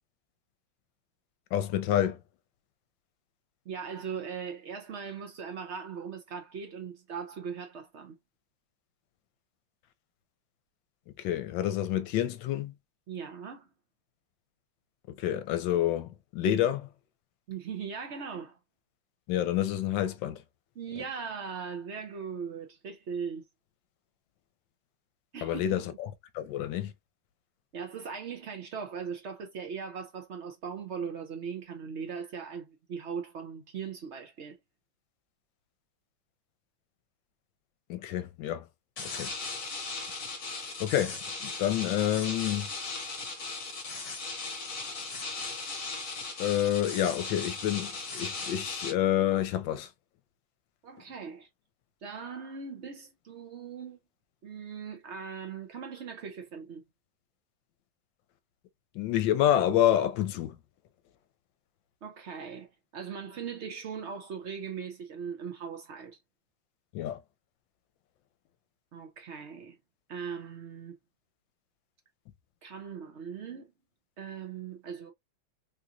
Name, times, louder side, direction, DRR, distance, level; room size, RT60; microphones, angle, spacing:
voice 1, 1.5-2.2 11.2-12.7 15.1-16.9 19.3-20.4 25.4-26.9 37.9-38.7 39.0-39.3 40.8-42.7 46.4-49.9 58.9-60.6 66.9-67.2, left 11 dB, 80° left, 1.3 m, -28 dB
voice 2, 3.7-8.2 13.1-13.7 17.5-18.6 20.7-23.4 25.3-25.9 27.7-34.6 50.8-51.5 52.0-54.0 54.4-56.8 62.0-66.2 68.9-69.8 70.1-71.0 72.6-73.7 74.2-75.1, right 6 dB, 75° right, 0.6 m, -39 dB
sound 1, 39.0-48.9, left 3 dB, 50° left, 1.2 m, -37 dB
3.7 x 2.8 x 2.5 m
omnidirectional pair, 2.1 m